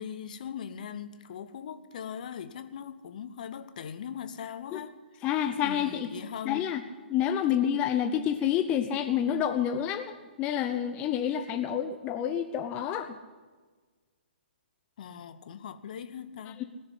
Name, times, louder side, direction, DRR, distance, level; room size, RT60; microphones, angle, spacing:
voice 1, 0.0-5.3 5.6-6.7 15.0-16.6, left 8 dB, 45° left, 1.1 m, -40 dB
voice 2, 5.2-6.1 6.4-6.8 7.1-13.2 16.6-16.7, left 9 dB, 20° left, 0.8 m, -28 dB
20.5 x 7.0 x 10.0 m
figure-of-eight pair, 130°, 6 cm